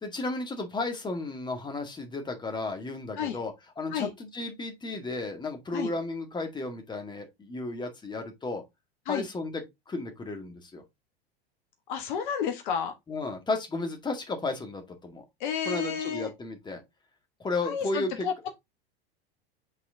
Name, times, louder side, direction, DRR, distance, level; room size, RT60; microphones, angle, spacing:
voice 1, 0.0-8.6 9.1-10.8 13.1-15.2 15.7-16.8 17.4-18.5, left 2 dB, 15° left, 2.0 m, -34 dB
voice 2, 11.9-12.9 15.4-16.3 17.6-18.5, left 7 dB, 50° left, 1.3 m, -31 dB
8.2 x 4.2 x 3.8 m
figure-of-eight pair, 85°, 31 cm